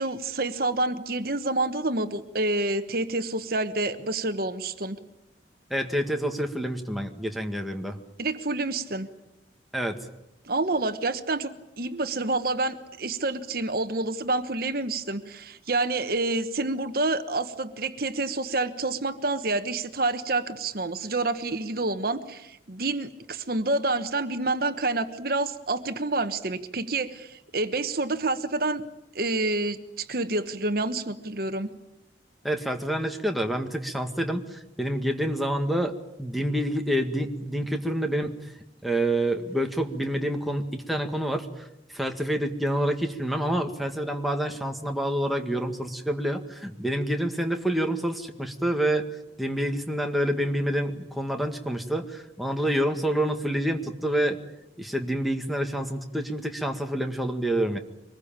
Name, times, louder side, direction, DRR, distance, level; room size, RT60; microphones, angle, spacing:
voice 1, 0.0-5.0 8.2-9.1 10.4-28.8 29.1-31.7, right 2 dB, 55° right, 10 dB, 1.2 m, -28 dB
voice 2, 5.7-8.0 9.7-10.1 32.4-38.3 38.8-49.1 49.4-54.4 54.8-57.8, right 1 dB, ahead, 3 dB, 1.8 m, -27 dB
25.0 x 21.0 x 8.9 m, 0.86 s
head